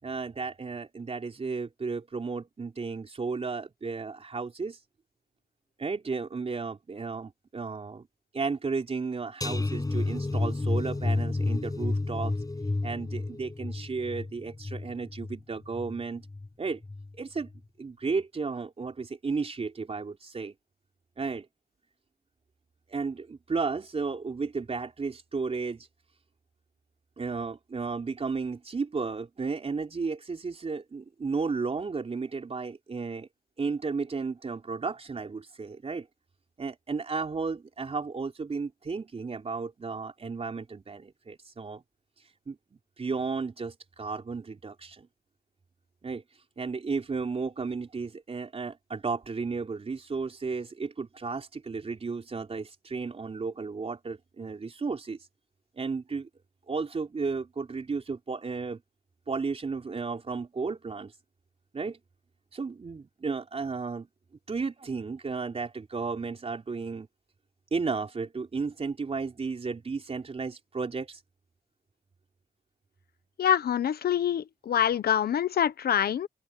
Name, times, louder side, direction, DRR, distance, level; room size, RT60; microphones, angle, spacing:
voice 1, 0.0-4.8 5.8-8.1 8.3-12.3 12.8-16.3 16.6-16.8 17.2-17.5 17.8-20.5 21.2-21.5 22.9-25.9 27.2-33.3 33.6-36.1 36.6-41.8 42.5-42.6 43.0-45.1 46.0-46.2 46.6-55.2 55.8-56.3 56.7-58.8 59.3-61.1 61.7-62.0 62.5-64.1 64.5-67.1 67.7-71.2, right 4 dB, 35° right, 3.9 m, -33 dB
sound 1, 9.4-16.5 16.8-17.1 17.5-17.6, left 2 dB, 20° left, 6.8 m, -31 dB
voice 2, 73.4-76.3, left 9 dB, 70° left, 1.1 m, -25 dB
open air
cardioid pair, 90°, 17 cm